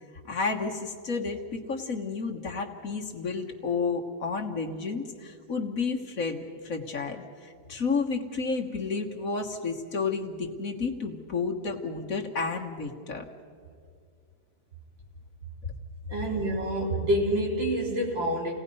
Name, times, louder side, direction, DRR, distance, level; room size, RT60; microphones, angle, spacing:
voice 1, 0.2-13.2, left 4 dB, 50° left, 1 dB, 1.8 m, -31 dB
voice 2, 16.1-18.5, right 1 dB, 85° right, -3 dB, 4.7 m, -27 dB
29.5 x 18.0 x 5.5 m, 2.2 s
omnidirectional pair, 2.0 m